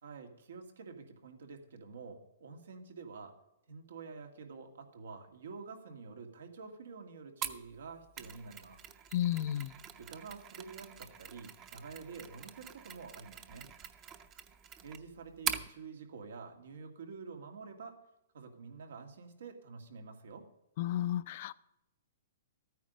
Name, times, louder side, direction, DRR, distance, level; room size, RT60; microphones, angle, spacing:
voice 1, 0.0-3.3 3.7-8.8 10.0-13.7 14.8-18.0 18.3-20.4, right 5 dB, 85° right, 4 dB, 2.1 m, -48 dB
Mechanisms, 7.4-15.7, right 9 dB, 25° right, 0.7 m, -44 dB
voice 2, 9.1-9.7 20.8-21.5, left 12 dB, 50° left, 18 dB, 0.5 m, -32 dB
13.0 x 9.2 x 5.2 m, 0.89 s
hypercardioid pair, 150°, 0 cm